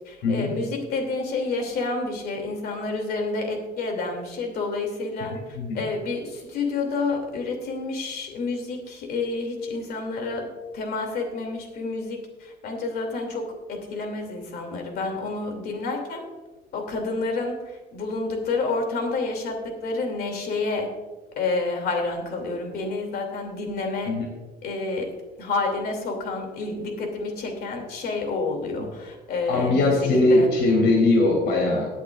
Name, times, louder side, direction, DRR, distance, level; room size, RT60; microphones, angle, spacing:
voice 1, 0.1-5.3 5.7-10.4 10.7-16.2 16.7-20.9 21.4-24.1 24.6-25.1 25.4-30.5, left 3 dB, 65° left, 3 dB, 2.8 m, -29 dB
voice 2, 29.5-31.9, left 2 dB, 90° left, 0 dB, 3.2 m, -20 dB
19.5 x 8.3 x 2.5 m, 1.2 s
cardioid pair, 110°, 17 cm